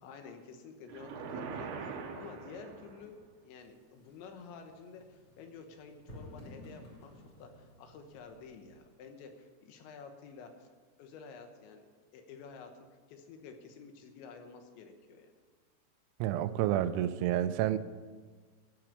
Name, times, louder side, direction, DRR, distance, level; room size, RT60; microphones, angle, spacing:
voice 1, 0.0-10.7 11.0-12.7 13.1-15.3, left 5 dB, 80° left, 5 dB, 3.3 m, -51 dB
sound 1, 0.9-3.2, right 5 dB, 70° right, 2.6 m, -42 dB
sound 2, 3.6-8.7, left 1 dB, 35° left, 3.1 m, -54 dB
voice 2, 16.2-17.8, right 12 dB, 85° right, 13 dB, 2.9 m, -29 dB
14.0 x 6.1 x 8.2 m, 1.4 s
omnidirectional pair, 5.3 m